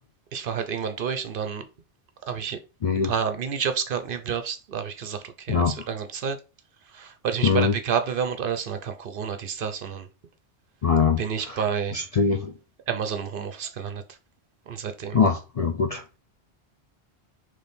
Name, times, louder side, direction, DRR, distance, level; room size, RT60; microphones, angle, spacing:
voice 1, 0.3-1.6 2.3-2.6 3.0-6.4 6.9-10.1 11.2-12.0 12.9-14.0 14.7-15.2, right 7 dB, 60° right, 0.7 m, -29 dB
voice 2, 2.8-3.1 5.5-5.7 7.4-7.7 10.8-11.6 11.9-12.5 15.1-16.2, left 5 dB, 50° left, 0.4 m, -23 dB
4.1 x 3.2 x 3.4 m
omnidirectional pair, 1.1 m